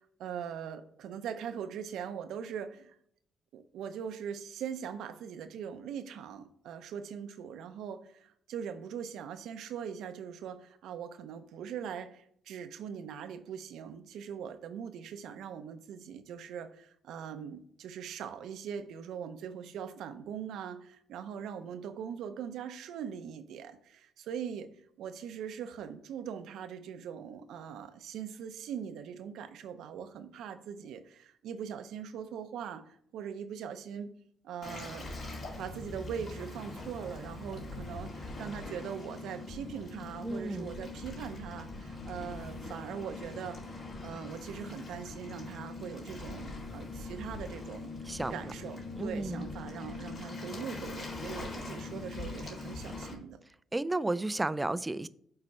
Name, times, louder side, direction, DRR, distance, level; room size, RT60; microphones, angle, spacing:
voice 1, 0.0-3.0 3.5-34.1 34.4-35.1 35.6-43.8 44.0-47.9 48.3-53.4, right 8 dB, 80° right, 9 dB, 0.6 m, -41 dB
Waves surf, 34.6-53.1, left 3 dB, 55° left, 2.2 m, -42 dB
voice 2, 40.2-40.7 48.1-48.4 49.0-49.5 53.7-55.1, right 2 dB, 15° right, 16 dB, 0.3 m, -32 dB
6.7 x 4.3 x 4.2 m, 0.65 s
cardioid pair, 90°, 0 cm